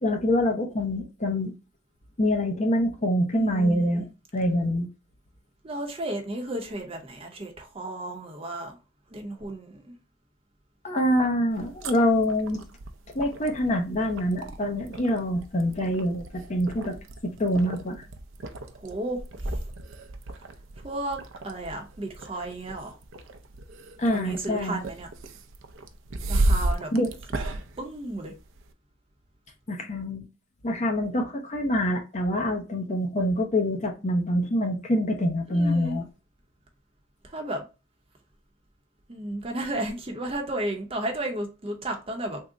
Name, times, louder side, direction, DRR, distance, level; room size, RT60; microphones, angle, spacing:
voice 1, 0.0-1.5 2.2-4.1 4.3-4.9 10.8-12.6 13.1-17.0 17.2-18.0 24.0-24.8 26.9-27.1 29.7-30.2 30.6-36.1, left 1 dB, 35° left, 0.6 m, -25 dB
voice 2, 3.3-4.1 5.6-8.8 9.1-9.9 18.7-19.6 20.4-20.5 20.8-23.0 24.1-25.1 26.3-26.9 27.8-28.3 35.5-36.0 37.2-37.6 39.1-42.4, right 1 dB, 30° right, 0.7 m, -33 dB
sound 1, 11.5-28.7, right 2 dB, 70° right, 0.5 m, -34 dB
3.6 x 2.1 x 3.7 m
head